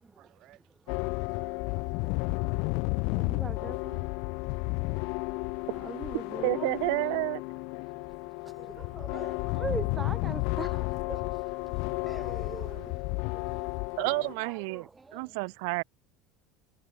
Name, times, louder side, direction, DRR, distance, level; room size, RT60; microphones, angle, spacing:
voice 1, 0.2-2.6 4.8-5.7 7.5-8.0 9.3-9.5, right 17 dB, 40° right, 7.9 m, -63 dB
sound 1, 0.9-14.3, left 33 dB, 60° left, 0.3 m, -32 dB
voice 2, 2.8-6.7 8.3-14.2 14.4-15.4, right 4 dB, 10° right, 0.5 m, -43 dB
voice 3, 6.4-7.4 14.0-15.8, right 32 dB, 70° right, 0.7 m, -30 dB
cardioid pair, 175°, 0 cm